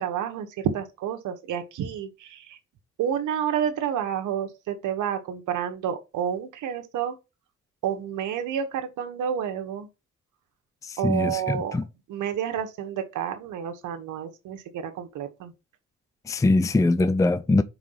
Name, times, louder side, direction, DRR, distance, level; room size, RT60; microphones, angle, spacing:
voice 1, 0.0-2.6 3.0-7.2 7.8-9.9 11.0-11.8 12.1-15.5, right 9 dB, 85° right, 1.4 m, -29 dB
voice 2, 10.8-11.8 16.3-17.6, left 2 dB, 10° left, 0.5 m, -22 dB
4.8 x 4.8 x 5.8 m
cardioid pair, 90°, 30 cm